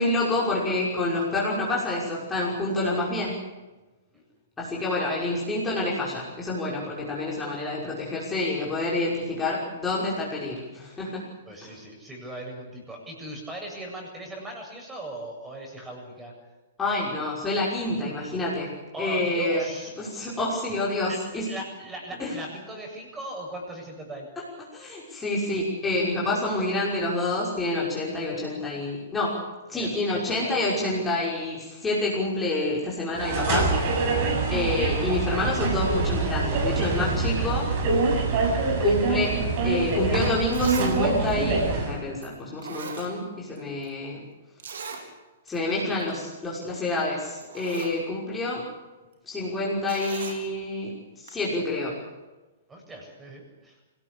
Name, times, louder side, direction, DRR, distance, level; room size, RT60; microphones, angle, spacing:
voice 1, 0.0-3.4 4.6-11.3 11.6-11.7 16.8-19.7 20.0-21.5 22.2-22.3 24.7-29.4 29.7-33.8 34.5-37.7 38.8-39.4 39.6-44.2 45.5-48.7 49.3-52.0, left 2 dB, 15° left, -5 dB, 5.9 m, -28 dB
voice 2, 11.4-16.3 18.9-19.9 21.1-21.2 21.5-24.3 29.7-30.6 37.4-37.5 52.7-53.8, right 1 dB, 10° right, 1 dB, 7.9 m, -39 dB
sound 1, 33.1-42.0, right 3 dB, 40° right, 7.5 m, -25 dB
Zipper (clothing), 40.5-40.9 41.3-41.4 42.2-42.3 42.6-43.6 43.8-43.9 44.6-45.0 45.5-45.6 45.9-46.1 47.0-47.1 47.4-48.0 49.9-50.4 51.3-51.4, right 5 dB, 60° right, 4.3 m, -38 dB
26.0 x 18.5 x 8.5 m, 1.1 s
figure-of-eight pair, 110°, 0 cm